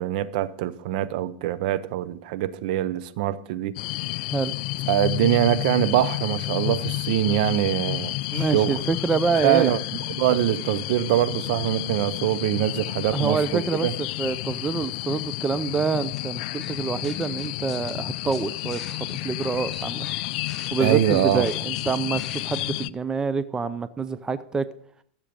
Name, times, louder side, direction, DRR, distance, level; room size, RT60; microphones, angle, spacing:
voice 1, 0.0-3.8 4.9-8.8 9.4-9.8 10.1-13.9 20.8-21.5, right 13 dB, 60° right, 0.7 m, -23 dB
sound 1, 3.8-22.9, left 18 dB, 55° left, 0.4 m, -31 dB
voice 2, 8.3-9.7 13.1-13.9 14.2-20.1 20.7-24.7, right 4 dB, 15° right, 0.6 m, -26 dB
sound 2, 15.7-16.2 16.6-17.9 18.3-22.6, left 2 dB, 5° left, 3.9 m, -45 dB
14.0 x 7.3 x 5.2 m
hypercardioid pair, 120°, 5 cm